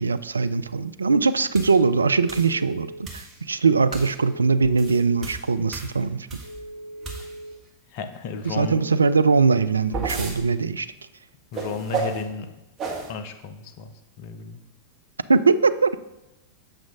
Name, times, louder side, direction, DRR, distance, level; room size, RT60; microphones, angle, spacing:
voice 1, 0.0-6.3 8.5-10.9 15.3-15.9, right 4 dB, 75° right, 14 dB, 0.3 m, -21 dB
sound 1, 1.5-1.8 2.3-2.5 3.0-3.4 3.9-4.2 4.6-6.6 7.0-7.5 9.5-10.4 11.5-12.2 12.8-13.1, right 4 dB, 25° right, 1.6 m, -32 dB
Telephone, 1.9-3.0 4.1-5.2 6.4-7.5 8.7-9.8, right 1 dB, 70° left, 1.2 m, -40 dB
voice 2, 7.9-8.8 11.5-12.5 13.1-14.6, left 5 dB, 45° left, 8 dB, 0.7 m, -33 dB
7.8 x 6.1 x 3.6 m, 0.92 s
figure-of-eight pair, 90°, 0 cm